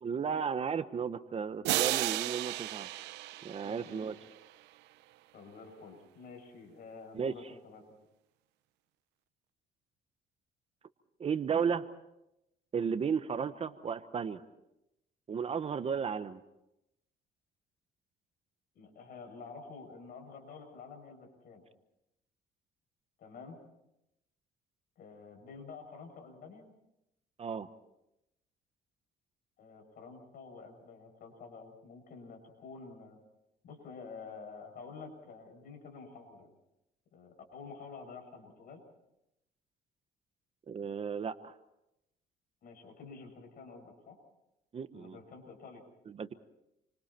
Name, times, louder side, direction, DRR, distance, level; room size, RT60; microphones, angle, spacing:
voice 1, 0.0-2.9 3.4-4.1 7.1-7.3 11.2-11.8 12.7-14.4 15.3-16.4 27.4-27.7 40.7-41.5 44.7-45.2 46.1-46.3, right 6 dB, 35° right, 11 dB, 1.1 m, -34 dB
sound 1, 1.6-4.3, right 17 dB, 90° right, 0.7 m, -34 dB
voice 2, 3.6-4.1 5.3-7.8 18.7-21.6 23.2-23.6 25.0-26.7 29.6-33.2 33.6-36.5 37.1-38.8 42.6-44.2 44.9-45.9, left 4 dB, 60° left, 3 dB, 7.4 m, -49 dB
29.0 x 25.0 x 4.5 m, 0.87 s
cardioid pair, 110°, 17 cm